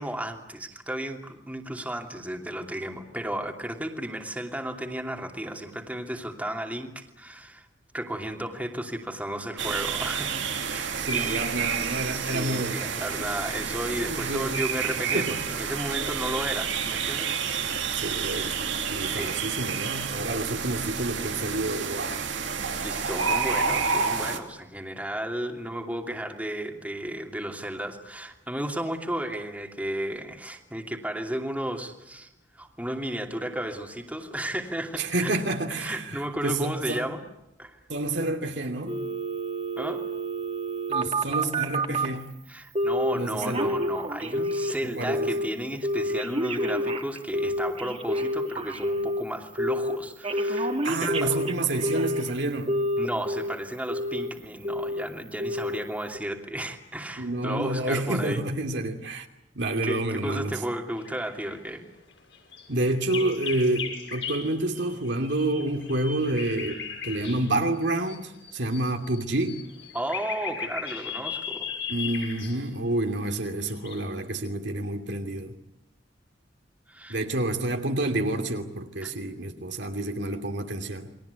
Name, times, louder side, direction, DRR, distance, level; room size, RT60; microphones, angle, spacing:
voice 1, 0.0-7.6 7.9-11.4 12.1-17.4 19.1-19.3 22.8-32.3 32.6-35.3 35.8-37.2 37.6-37.8 39.8-40.0 42.5-51.3 53.0-58.4 59.8-61.9 69.9-71.7 76.9-77.2 79.0-79.1, right 1 dB, 10° right, 2.8 m, -33 dB
sound 1, 9.6-24.4, right 6 dB, 90° right, 2.8 m, -29 dB
voice 2, 11.0-12.8 14.0-14.6 15.1-15.4 17.9-22.3 35.0-37.0 37.9-39.0 40.9-42.3 43.1-43.8 44.3-44.5 45.0-45.3 50.8-52.8 57.2-59.3 59.5-60.6 62.7-69.6 71.9-75.5 77.1-81.1, right 2 dB, 70° right, 2.7 m, -29 dB
Telephone, 38.9-42.2 42.8-43.1 43.4-44.8 45.1-45.5 45.8-49.2 49.6-50.0 50.2-52.3 52.7-53.5 53.9-54.3 54.6-55.0 55.4-55.8 56.1-56.2, equal, 35° right, 2.6 m, -28 dB
sound 2, 60.9-61.6 62.1-67.5 67.8-74.0, left 6 dB, 75° left, 6.9 m, -37 dB
29.5 x 22.5 x 8.3 m
head